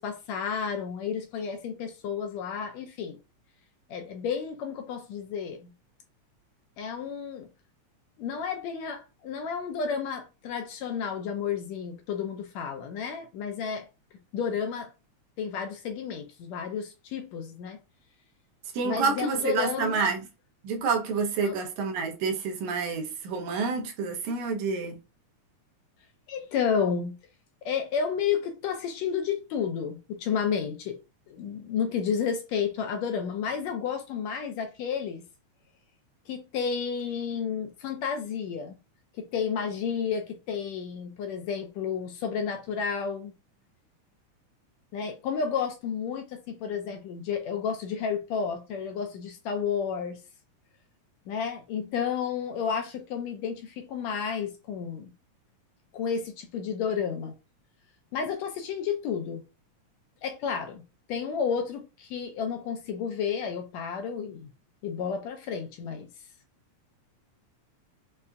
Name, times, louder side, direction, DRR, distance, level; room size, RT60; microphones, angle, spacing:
voice 1, 0.0-3.2 3.9-5.7 6.8-7.5 8.2-13.9 14.3-14.9 15.4-17.8 18.8-20.1 21.4-21.6 26.3-27.1 27.6-31.0 31.3-35.2 36.3-38.8 39.2-43.3 44.9-50.2 51.3-55.1 55.9-57.3 58.1-59.4 60.2-60.8 61.1-64.5 64.8-66.1, left 7 dB, 75° left, 1.7 m, -31 dB
voice 2, 18.7-20.3 20.6-25.0, right 5 dB, 80° right, 2.0 m, -28 dB
5.5 x 2.5 x 2.2 m
omnidirectional pair, 3.4 m